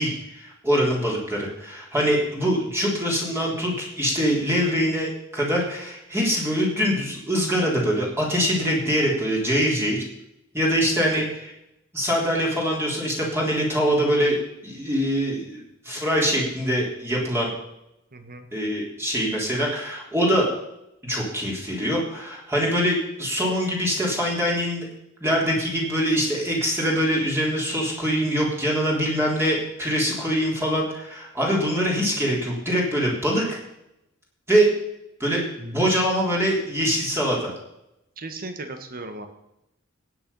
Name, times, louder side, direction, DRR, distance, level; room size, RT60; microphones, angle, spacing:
voice 1, 0.0-10.0 10.5-11.3 11.9-14.4 14.6-17.5 18.5-20.5 21.0-24.9 25.2-33.6 34.5-34.7 35.2-37.5, equal, 10° right, -3 dB, 3.6 m, -23 dB
voice 2, 10.7-11.3 18.1-18.5 38.2-39.3, right 2 dB, 45° right, 7 dB, 1.7 m, -36 dB
16.5 x 9.2 x 5.7 m, 0.85 s
head